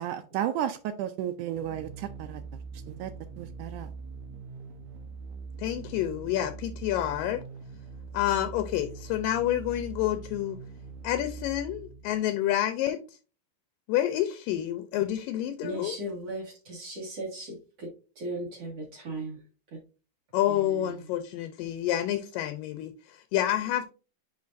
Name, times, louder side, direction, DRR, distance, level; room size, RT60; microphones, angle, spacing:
voice 1, 0.0-2.6 2.9-3.1 3.4-3.9, right 11 dB, 85° right, 1.7 m, -33 dB
sound 1, 1.5-12.3, right 4 dB, 70° right, 1.9 m, -43 dB
voice 2, 5.6-7.4 8.1-10.6 11.0-13.0 13.9-16.0 20.3-23.8, left 12 dB, 80° left, 2.3 m, -28 dB
voice 3, 15.6-17.9 18.2-19.4 20.5-21.0, right 1 dB, 50° right, 2.5 m, -37 dB
9.5 x 4.5 x 2.5 m
omnidirectional pair, 4.1 m